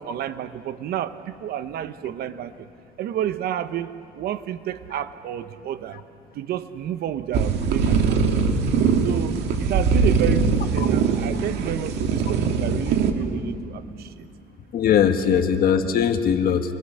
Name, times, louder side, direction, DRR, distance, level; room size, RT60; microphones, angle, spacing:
voice 1, 0.0-2.5 3.0-6.0 6.3-8.3 9.0-14.1 15.0-15.4, right 10 dB, 65° right, 12 dB, 0.9 m, -30 dB
sound 1, 7.3-13.1, right 5 dB, 85° right, 2.0 m, -21 dB
voice 2, 14.7-16.8, left 8 dB, 60° left, 7 dB, 1.7 m, -20 dB
28.0 x 22.5 x 6.5 m, 2.5 s
cardioid pair, 110°, 17 cm